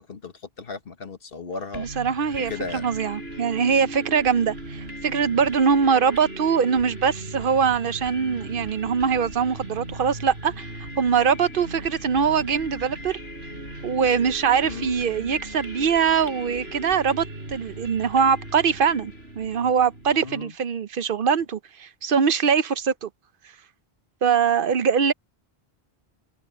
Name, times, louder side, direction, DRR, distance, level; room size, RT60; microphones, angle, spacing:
voice 1, 0.0-1.9 2.5-2.9 14.6-15.0 20.2-20.5, left 4 dB, 65° left, 1.6 m, -35 dB
sound 1, 1.7-20.4, right 1 dB, 85° right, 5.6 m, -38 dB
voice 2, 1.8-13.2 13.8-23.1 24.2-25.1, right 6 dB, 60° right, 0.8 m, -22 dB
sound 2, 11.5-17.3, equal, 10° right, 6.8 m, -52 dB
omnidirectional pair, 1.0 m